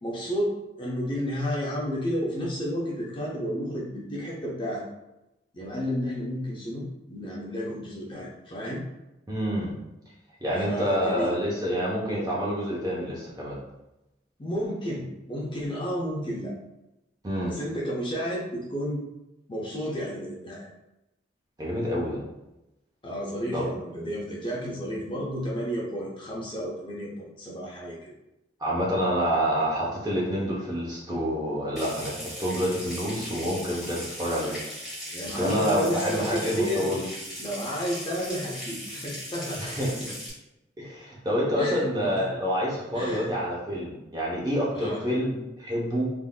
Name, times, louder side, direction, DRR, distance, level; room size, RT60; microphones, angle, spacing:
voice 1, 0.0-4.8 5.5-8.8 10.6-11.4 14.4-16.5 17.4-19.0 19.5-20.6 23.0-28.1 35.1-36.9 37.4-39.7 41.5-41.9 42.9-43.3 44.7-45.0, equal, 25° left, -4 dB, 0.6 m, -31 dB
voice 2, 9.3-9.7 10.4-13.6 17.2-17.5 21.6-22.2 23.5-23.6 28.6-34.6 35.3-37.0 39.6-40.1 40.8-46.1, equal, 20° right, -5 dB, 0.7 m, -27 dB
Water tap faucet / Sink (filling or washing) / Trickle dribble, 31.8-40.3, equal, ahead, 1.1 m, -38 dB
3.5 x 2.6 x 2.2 m, 0.93 s
head